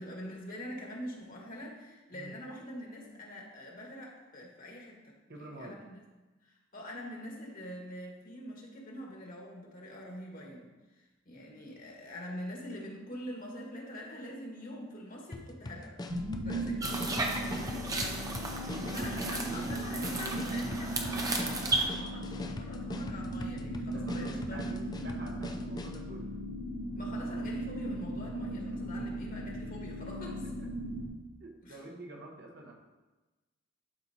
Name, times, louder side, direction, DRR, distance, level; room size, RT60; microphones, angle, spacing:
voice 1, 0.0-6.0 6.4-16.0 16.4-16.8 17.9-18.3 18.9-24.7 27.0-30.5 31.6-31.8, left 1 dB, 45° left, -1 dB, 1.6 m, -44 dB
voice 2, 5.3-5.8 16.6-16.9 17.4-17.9 18.7-19.7 23.9-26.4 30.2-30.3 30.6-30.7 31.4-32.7, right 2 dB, 60° right, 0 dB, 1.2 m, -47 dB
sound 1, 15.3-26.1, left 1 dB, 20° left, 0.4 m, -43 dB
sound 2, 16.1-31.1, right 1 dB, 75° right, 1.1 m, -37 dB
sound 3, 16.8-21.9, right 2 dB, 20° right, 0.7 m, -35 dB
12.0 x 4.3 x 2.9 m, 1.1 s
head